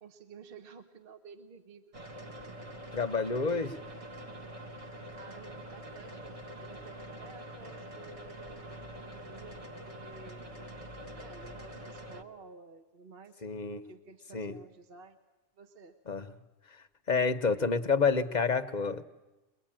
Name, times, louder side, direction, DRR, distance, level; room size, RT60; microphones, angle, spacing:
voice 1, 0.0-2.1 5.1-10.8 11.1-13.5 13.9-15.2 15.6-16.0, right 4 dB, 50° right, 8 dB, 1.3 m, -53 dB
sound 1, 1.9-12.2, right 1 dB, 30° right, 1.1 m, -45 dB
voice 2, 2.9-3.8 13.4-13.8 14.3-14.6 16.1-16.3 16.7-19.0, left 5 dB, 40° left, 9 dB, 0.9 m, -29 dB
22.5 x 22.0 x 8.9 m, 1.1 s
omnidirectional pair, 1.3 m